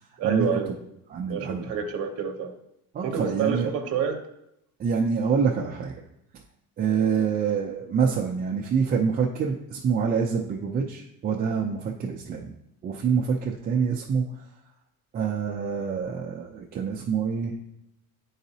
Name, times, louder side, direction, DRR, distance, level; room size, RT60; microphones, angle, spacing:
voice 1, 0.2-0.7 1.3-2.5 3.0-4.2, right 6 dB, 40° right, 3 dB, 0.8 m, -28 dB
voice 2, 1.1-1.7 2.9-3.7 4.8-6.0 6.8-12.5 12.8-14.2 15.1-17.5, right 6 dB, 25° right, -2 dB, 0.4 m, -26 dB
10.0 x 4.0 x 2.7 m, 0.83 s
cardioid pair, 170°, 37 cm